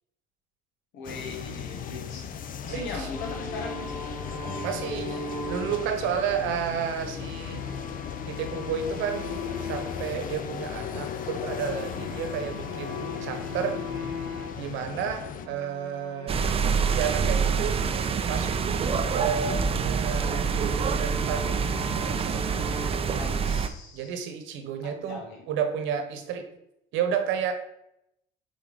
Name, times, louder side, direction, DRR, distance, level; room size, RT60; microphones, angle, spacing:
voice 1, 0.9-2.3 2.6-4.8 6.7-6.9 15.4-15.7 23.2-24.2 24.8-25.5, left 3 dB, 75° left, 2 dB, 1.7 m, -40 dB
sound 1, 1.0-15.5, left 8 dB, 45° left, 0.5 m, -36 dB
voice 2, 2.7-3.1 4.6-5.2 5.4-7.7 8.3-9.4 9.7-13.8 14.6-16.4 16.9-17.8 18.3-18.6 19.1-20.5 21.0-21.5 22.0-22.5 23.9-26.5 26.9-27.5, right 7 dB, 75° right, 7 dB, 1.0 m, -31 dB
sound 2, 3.1-10.2 10.5-14.6 15.2-22.9, equal, 20° left, 2.3 m, -38 dB
sound 3, 16.3-23.7, right 6 dB, 30° right, 0.5 m, -26 dB
6.2 x 4.1 x 4.0 m, 0.81 s
cardioid pair, 105°, 20 cm